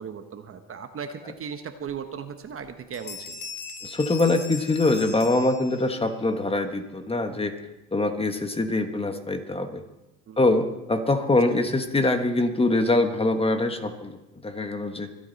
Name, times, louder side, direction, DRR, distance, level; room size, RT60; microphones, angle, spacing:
voice 1, 0.0-3.4 10.3-10.4, right 6 dB, 35° right, 8 dB, 1.0 m, -37 dB
Bell, 1.9-2.0 2.4-2.7 2.9-6.1, left 5 dB, 50° left, 2.0 m, -39 dB
voice 2, 3.8-7.5 7.9-9.8 10.4-14.2 14.4-15.1, left 2 dB, 15° left, 7 dB, 1.3 m, -24 dB
24.5 x 9.0 x 4.1 m, 0.99 s
supercardioid pair, 100°, 37 cm